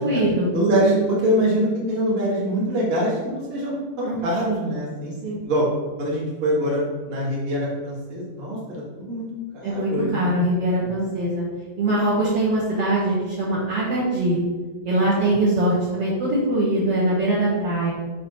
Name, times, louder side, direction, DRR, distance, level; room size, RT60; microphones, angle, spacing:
voice 1, 0.0-0.5 4.0-4.2 5.2-5.4 9.6-11.4 11.8-14.4 14.8-17.9, right 1 dB, 60° right, -8 dB, 1.8 m, -22 dB
voice 2, 0.5-5.1 5.4-5.7 6.0-6.8 7.1-9.3 9.5-10.3 10.8-11.1 15.3-15.4, right 1 dB, 30° right, -6 dB, 1.2 m, -24 dB
6.6 x 4.1 x 5.7 m, 1.3 s
omnidirectional pair, 4.3 m